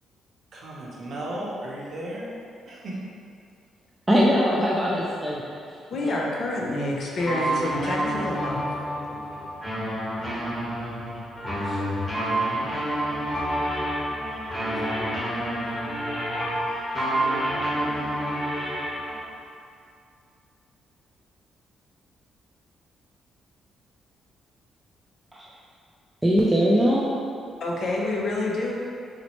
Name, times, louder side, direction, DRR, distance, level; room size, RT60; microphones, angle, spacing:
voice 1, 0.5-2.3 2.7-3.0, right 1 dB, 60° right, -5 dB, 0.7 m, -35 dB
voice 2, 4.1-5.8 6.0-6.2 25.3-25.4 26.2-27.1, equal, 10° right, -6 dB, 0.4 m, -21 dB
voice 3, 5.9-8.6 27.6-28.7, left 2 dB, 55° left, -3 dB, 0.5 m, -27 dB
voice 4, 7.2-19.2, right 1 dB, 15° left, -8 dB, 1.1 m, -28 dB
4.1 x 2.0 x 3.0 m, 2.4 s
cardioid pair, 90°, 0 cm